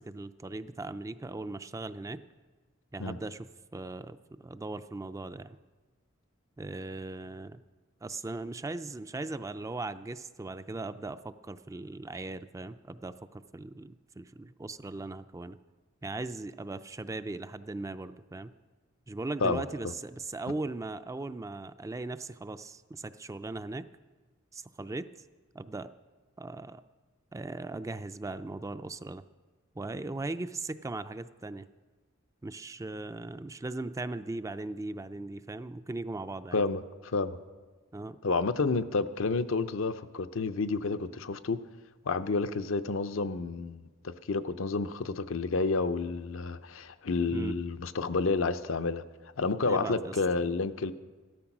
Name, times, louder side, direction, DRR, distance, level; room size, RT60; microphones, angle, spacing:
voice 1, 0.0-2.2 2.9-5.6 6.6-7.6 8.0-15.6 16.0-18.5 19.1-23.9 24.5-25.1 25.5-25.9 26.4-26.8 27.3-29.2 29.8-31.7 32.4-36.6 37.9-38.2 47.3-47.6 49.6-50.2, right 2 dB, 15° right, 12 dB, 0.3 m, -38 dB
voice 2, 36.5-37.4 38.2-41.6 42.0-49.0 49.4-50.9, left 4 dB, 70° left, 11 dB, 0.6 m, -30 dB
14.0 x 12.5 x 6.0 m, 1.3 s
head